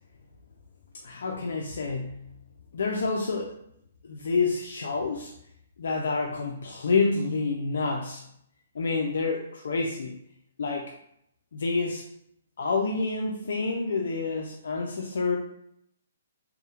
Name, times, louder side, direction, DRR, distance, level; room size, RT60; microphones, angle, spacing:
voice 1, 1.0-2.2 2.7-3.6 4.0-5.3 5.8-8.2 8.8-10.2 10.6-10.9 11.5-12.0 12.6-15.4, left 4 dB, 70° left, 1 dB, 0.3 m, -28 dB
2.3 x 2.0 x 2.9 m, 0.71 s
hypercardioid pair, 160°, 0 cm